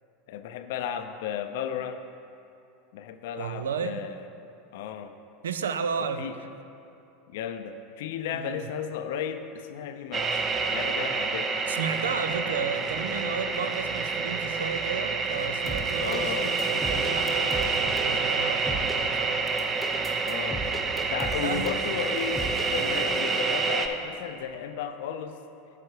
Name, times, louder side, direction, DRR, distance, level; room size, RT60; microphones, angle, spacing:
voice 1, 0.3-2.0 2.9-4.2 4.7-5.1 6.2-6.4 7.3-10.5 10.7-11.6 16.0-16.5 20.3-20.6 21.1-22.4 22.7-25.4, left 8 dB, 65° left, 9 dB, 0.5 m, -34 dB
voice 2, 3.4-4.1 5.4-6.5 8.3-8.7 11.7-19.4 21.4-21.7, right 6 dB, 80° right, 10 dB, 0.4 m, -33 dB
sound 1, 10.1-23.9, right 4 dB, 30° right, 0.6 m, -28 dB
sound 2, 15.7-16.2 16.6-18.1 18.7-19.0 19.5-22.0 22.4-22.7, equal, 5° left, 1.1 m, -36 dB
9.5 x 7.6 x 3.2 m, 2.7 s
hypercardioid pair, 85°, 0 cm